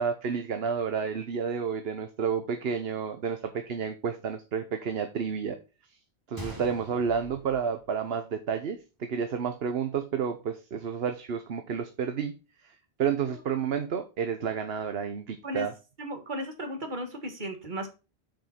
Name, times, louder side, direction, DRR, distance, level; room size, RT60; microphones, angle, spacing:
voice 1, 0.0-5.6 6.3-12.3 12.6-15.7, right 6 dB, 70° right, 8 dB, 1.1 m, -30 dB
Gunshot gunfire, 6.4-8.4 8.7-8.8 9.4-9.7, left 1 dB, 20° right, 1.9 m, -44 dB
voice 2, 16.0-17.9, equal, 45° right, 5 dB, 1.8 m, -35 dB
7.7 x 5.3 x 4.3 m, 0.30 s
omnidirectional pair, 1.1 m